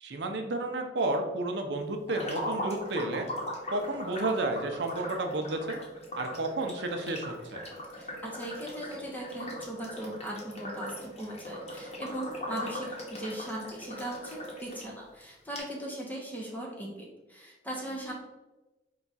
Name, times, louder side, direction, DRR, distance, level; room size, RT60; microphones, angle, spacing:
voice 1, 0.0-3.3 3.7-5.8 6.2-7.6, right 2 dB, 65° right, 4 dB, 0.6 m, -31 dB
sound 1, 2.1-14.8 15.2-15.3 15.6-15.7, left 1 dB, 35° left, 0.9 m, -39 dB
voice 2, 7.9-18.1, right 1 dB, 10° left, -2 dB, 0.7 m, -39 dB
4.8 x 2.3 x 4.0 m, 1.1 s
head